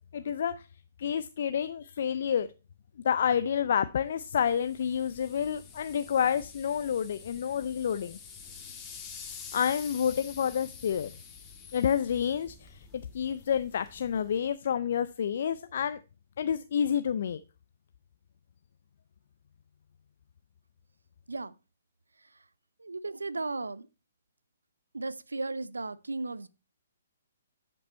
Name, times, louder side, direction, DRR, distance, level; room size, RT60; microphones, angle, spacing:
voice 1, 0.1-0.5 1.0-2.5 3.0-8.2 9.5-11.1 11.7-12.8 13.1-16.0 16.4-17.4, left 8 dB, 55° left, 0.4 m, -29 dB
sound 1, 4.3-14.5, left 6 dB, 20° left, 1.9 m, -48 dB
voice 2, 22.2-22.5 22.8-23.9 24.9-26.5, right 3 dB, 85° right, 0.6 m, -36 dB
11.0 x 5.4 x 4.3 m
figure-of-eight pair, 130°, 0 cm